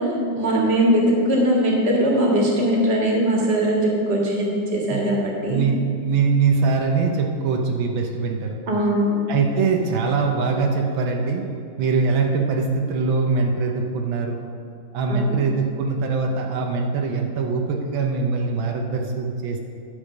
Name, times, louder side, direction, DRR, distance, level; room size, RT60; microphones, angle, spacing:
voice 1, 0.0-5.6 8.7-9.2 15.1-15.4, right 1 dB, 35° right, -2 dB, 1.8 m, -20 dB
voice 2, 5.5-8.6 9.3-11.5 11.8-14.4 14.9-19.6, right 4 dB, 85° right, 2 dB, 1.7 m, -22 dB
11.0 x 4.9 x 6.5 m, 2.4 s
omnidirectional pair, 2.1 m